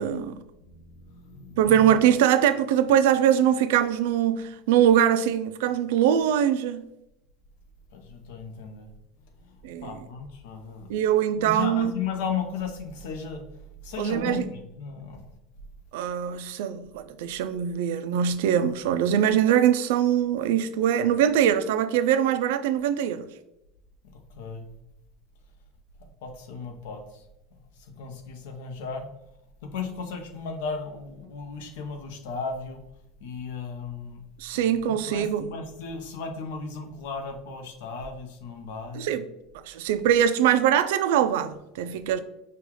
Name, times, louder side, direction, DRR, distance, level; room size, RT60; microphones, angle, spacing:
voice 1, 0.0-0.4 1.6-6.8 9.6-10.0 10.9-11.9 14.0-14.5 15.9-23.3 34.4-35.5 38.9-39.2 39.7-42.2, right 9 dB, 80° right, 0.3 m, -22 dB
voice 2, 0.6-1.9 7.9-8.9 9.2-10.9 11.3-13.4 13.8-15.3 24.3-24.7 26.2-27.2 27.8-29.1 29.7-32.8 33.2-34.2 34.5-39.1, left 5 dB, 80° left, 0.8 m, -35 dB
5.5 x 2.3 x 3.0 m
cardioid pair, 175°, 0 cm